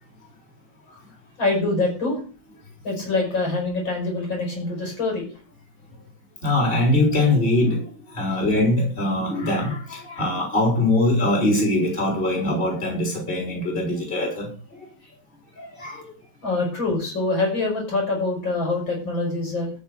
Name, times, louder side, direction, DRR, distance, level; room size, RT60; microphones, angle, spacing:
voice 1, 1.4-2.2 2.8-5.3 16.4-19.7, left 2 dB, 75° left, 0 dB, 6.3 m, -25 dB
voice 2, 6.4-14.9 15.6-16.1, left 1 dB, 25° left, -1 dB, 4.2 m, -22 dB
13.5 x 5.4 x 7.8 m, 0.38 s
omnidirectional pair, 2.1 m